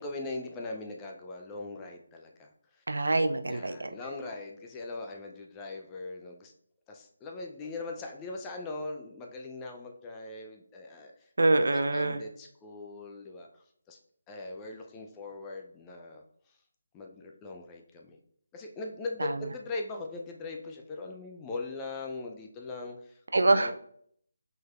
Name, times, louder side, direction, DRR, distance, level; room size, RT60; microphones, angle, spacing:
voice 1, 0.0-2.8 3.5-6.5 6.9-11.3 11.7-14.0 14.3-16.6 16.9-18.2 18.5-23.7, left 3 dB, 15° left, 2 dB, 0.5 m, -40 dB
voice 2, 2.9-3.9 11.4-12.2 19.2-19.4 23.3-23.7, right 2 dB, 70° right, 9 dB, 0.5 m, -25 dB
5.0 x 3.9 x 2.4 m, 0.65 s
figure-of-eight pair, 155°, 0 cm